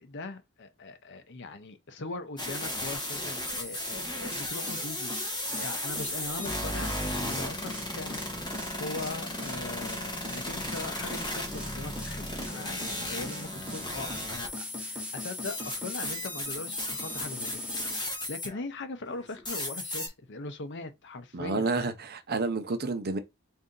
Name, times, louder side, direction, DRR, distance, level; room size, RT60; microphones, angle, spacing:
voice 1, 0.0-8.3 8.8-21.9, left 3 dB, 55° left, 0.7 m, -40 dB
sound 1, 2.4-18.6 19.1-20.1, left 1 dB, 20° left, 1.3 m, -35 dB
sound 2, 4.2-18.1, equal, 5° right, 1.0 m, -42 dB
voice 2, 21.3-23.2, right 3 dB, 45° right, 0.6 m, -30 dB
4.0 x 2.7 x 3.8 m
head